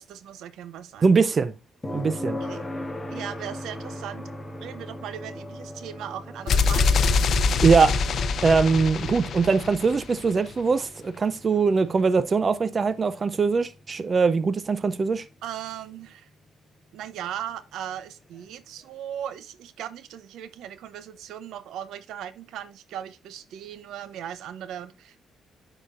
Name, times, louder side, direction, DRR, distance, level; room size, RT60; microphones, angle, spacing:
voice 1, 0.0-1.1 2.3-2.6 3.1-4.3 4.6-6.9 15.4-16.3 16.9-25.2, right 10 dB, 80° right, 0.6 m, -38 dB
voice 2, 1.0-1.5 1.9-2.4 7.6-8.0 8.4-15.2, right 4 dB, 35° right, 0.5 m, -22 dB
sound 1, 1.8-15.7 17.9-18.0, left 1 dB, 20° left, 1.0 m, -40 dB
sound 2, 6.5-10.3, left 4 dB, 60° left, 0.6 m, -24 dB
9.9 x 4.9 x 2.5 m
cardioid pair, 90°, 0 cm